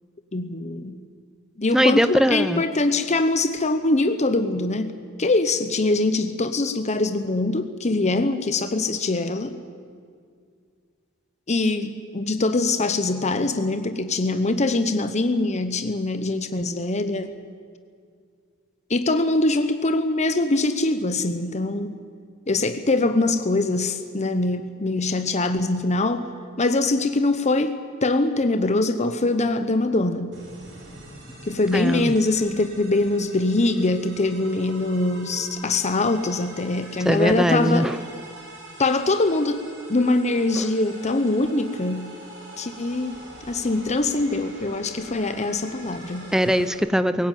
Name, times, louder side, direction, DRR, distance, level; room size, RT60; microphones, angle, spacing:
voice 1, 0.3-1.0 1.6-9.5 11.5-17.3 18.9-22.0 22.5-26.3 26.6-27.7 28.0-30.3 31.4-37.9 38.8-42.1 42.6-43.2 43.5-46.3, left 2 dB, 35° left, 9 dB, 0.9 m, -23 dB
voice 2, 1.7-2.6 31.7-32.1 37.0-38.0 40.6-40.7 46.3-47.3, equal, 5° right, 12 dB, 0.6 m, -21 dB
sound 1, 30.3-46.7, right 1 dB, 60° right, 7.6 m, -42 dB
21.5 x 18.0 x 9.1 m, 2.1 s
head